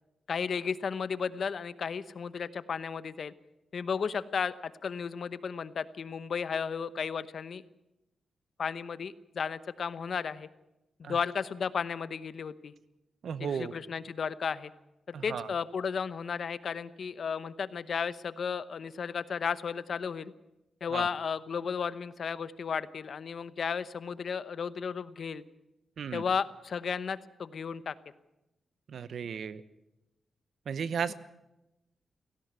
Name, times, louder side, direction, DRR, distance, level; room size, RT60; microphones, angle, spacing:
voice 1, 0.3-3.3 3.7-7.6 8.6-10.5 11.0-12.7 13.4-14.7 15.1-20.3 20.8-25.4 26.1-27.9 31.1-31.2, left 6 dB, 60° left, 15 dB, 0.9 m, -34 dB
voice 2, 13.2-13.7 15.1-15.5 20.9-21.1 26.0-26.2 28.9-29.6 30.7-31.1, right 7 dB, 75° right, 15 dB, 1.0 m, -35 dB
17.5 x 16.0 x 9.6 m, 0.95 s
cardioid pair, 95°, 0 cm